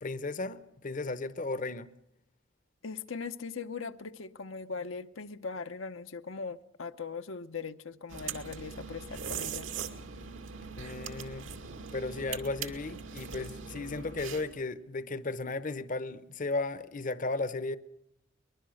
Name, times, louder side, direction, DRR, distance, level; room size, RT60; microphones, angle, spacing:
voice 1, 0.0-1.9 10.8-11.4 11.9-17.8, left 3 dB, 40° left, 0.8 m, -35 dB
voice 2, 2.8-9.7, left 5 dB, 80° left, 0.9 m, -40 dB
sound 1, 8.1-14.6, right 6 dB, 80° right, 2.2 m, -41 dB
23.5 x 20.5 x 6.4 m
head